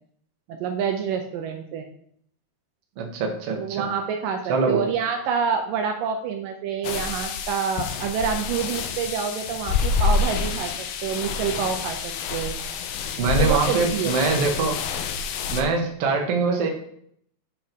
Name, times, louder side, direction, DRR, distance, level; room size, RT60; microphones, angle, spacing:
voice 1, 0.5-1.9 3.5-10.7 11.0-12.6 13.4-14.4, right 7 dB, 80° right, 4 dB, 2.2 m, -27 dB
voice 2, 3.0-3.9 4.5-4.8 13.2-14.8 15.5-16.7, right 4 dB, 55° right, 2 dB, 1.8 m, -23 dB
sound 1, 6.8-15.6, left 5 dB, 90° left, 2.5 m, -27 dB
7.5 x 5.6 x 5.2 m, 0.67 s
omnidirectional pair, 4.2 m